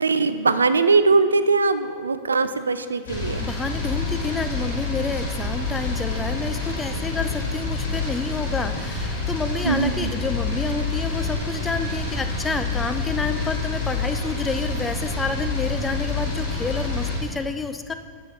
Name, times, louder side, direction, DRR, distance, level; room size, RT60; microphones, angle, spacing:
voice 1, 0.0-3.4 9.6-10.1, right 4 dB, 75° right, 12 dB, 0.3 m, -21 dB
sound 1, 3.1-17.2, left 3 dB, 60° left, 2.2 m, -27 dB
voice 2, 3.4-17.9, left 4 dB, 15° left, 8 dB, 0.4 m, -29 dB
9.2 x 6.9 x 3.7 m, 2.1 s
figure-of-eight pair, 90°, 0 cm